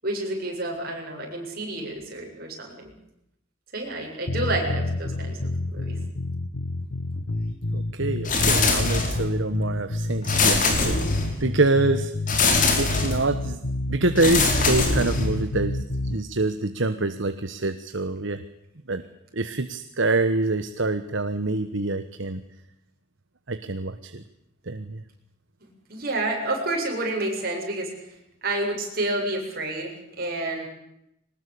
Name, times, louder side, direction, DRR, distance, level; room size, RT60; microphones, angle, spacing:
voice 1, 0.0-2.9 3.7-5.4 5.7-6.0 10.7-10.9 25.9-28.2 28.4-30.7, right 2 dB, 45° right, 0 dB, 7.8 m, -29 dB
sound 1, 4.3-16.2, left 2 dB, 85° left, 1.5 m, -29 dB
voice 2, 7.7-11.0 11.4-12.1 12.8-13.6 13.9-15.8 16.0-18.4 18.9-19.0 19.3-22.4 23.5-24.2 24.7-25.0, right 2 dB, 65° right, 10 dB, 1.2 m, -25 dB
sound 2, 8.2-9.4 10.2-11.5 12.3-13.3 14.2-15.5, left 3 dB, 40° left, 3.9 m, -23 dB
23.0 x 19.5 x 8.5 m, 0.81 s
head